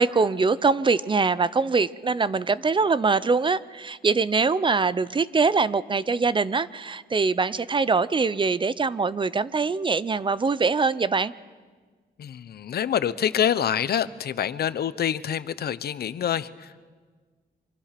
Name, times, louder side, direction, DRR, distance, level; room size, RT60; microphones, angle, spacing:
voice 1, 0.0-11.3, right 4 dB, 30° right, 17 dB, 0.6 m, -23 dB
voice 2, 12.2-16.8, left 9 dB, 65° left, 14 dB, 0.9 m, -26 dB
28.0 x 25.0 x 6.0 m, 1.5 s
cardioid pair, 110°, 17 cm